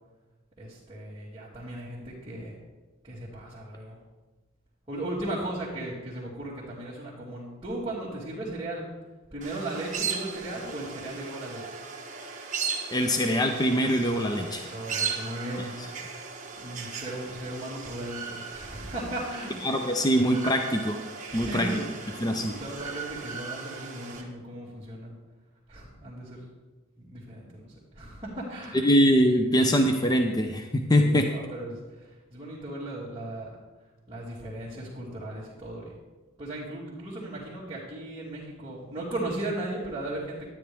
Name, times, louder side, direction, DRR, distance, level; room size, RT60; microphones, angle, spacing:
voice 1, 0.6-2.6 3.0-4.0 4.9-8.9 9.3-11.8 14.3-15.8 16.6-19.6 21.3-25.1 25.7-26.4 27.0-28.8 31.0-33.5 34.1-36.0 36.4-40.5, right 1 dB, 20° right, -11 dB, 2.5 m, -37 dB
sound 1, 9.4-24.2, right 6 dB, 40° right, 1.4 m, -37 dB
voice 2, 12.9-14.7 19.6-21.0 21.3-21.8 22.2-22.5 28.8-31.3, equal, 20° left, 4 dB, 0.6 m, -23 dB
12.5 x 10.0 x 3.5 m, 1.2 s
head